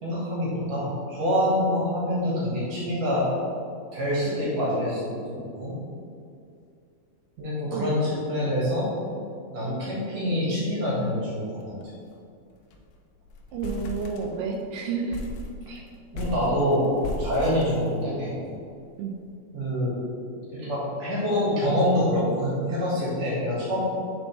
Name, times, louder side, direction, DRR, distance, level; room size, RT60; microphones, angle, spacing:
voice 1, 0.0-3.3 3.9-5.7 7.4-8.9 9.5-11.7 15.7-15.8 16.1-16.9 17.2-18.3 19.5-20.1 20.4-23.8, equal, 50° right, -7 dB, 2.0 m, -26 dB
sound 1, 11.6-11.8 12.1-12.2 12.5-12.9 13.3-14.7 15.1-18.4, left 2 dB, 90° left, 2.5 m, -37 dB
voice 2, 13.5-15.2 15.7-15.8 19.0-19.2, right 5 dB, 90° right, 1 dB, 2.5 m, -30 dB
10.5 x 4.3 x 3.3 m, 2.4 s
omnidirectional pair, 5.6 m